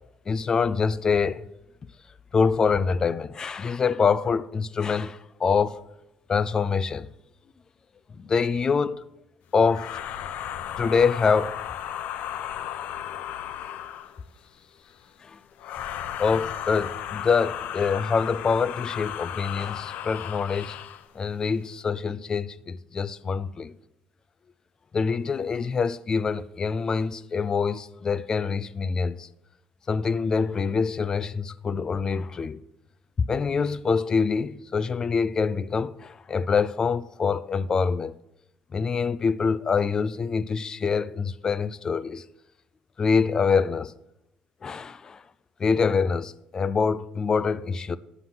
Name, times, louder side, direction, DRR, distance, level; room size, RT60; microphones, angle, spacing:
voice 1, 0.3-1.5 2.3-5.8 6.3-7.1 8.1-9.0 9.5-10.0 10.8-11.6 15.2-15.4 16.2-20.8 21.2-23.7 24.9-29.3 29.9-32.6 33.2-38.1 38.7-42.2 43.0-43.9 44.6-45.2 45.6-48.0, left 5 dB, 25° left, 0.3 m, -25 dB
sound 1, 9.7-14.2 15.6-21.1, left 10 dB, 65° left, 0.6 m, -35 dB
9.3 x 5.8 x 5.8 m
cardioid pair, 150°, 3 cm